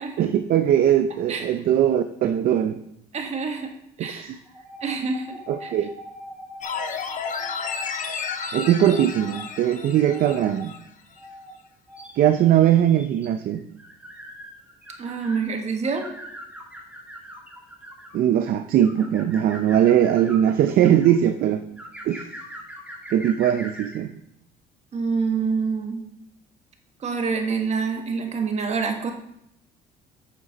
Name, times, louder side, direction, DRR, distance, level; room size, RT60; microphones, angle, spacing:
voice 1, 0.2-2.8 4.0-4.4 5.5-5.9 8.5-10.7 12.2-13.6 18.1-21.7 22.0-22.3 23.1-24.1, right 10 dB, 60° right, 9 dB, 0.5 m, -20 dB
voice 2, 3.1-3.7 4.0-4.4 4.8-5.7 15.0-16.1 24.9-26.0 27.0-29.1, right 5 dB, 40° right, 4 dB, 1.4 m, -27 dB
sound 1, 4.5-9.4 10.1-10.6 11.2-11.5 11.9-15.4 15.8-18.2 18.8-21.1 21.8-24.0, equal, 5° right, 2.3 m, -42 dB
sound 2, 6.6-10.8 11.2-11.3, left 6 dB, 50° left, 1.0 m, -32 dB
9.0 x 6.5 x 4.0 m, 0.77 s
cardioid pair, 110°, 17 cm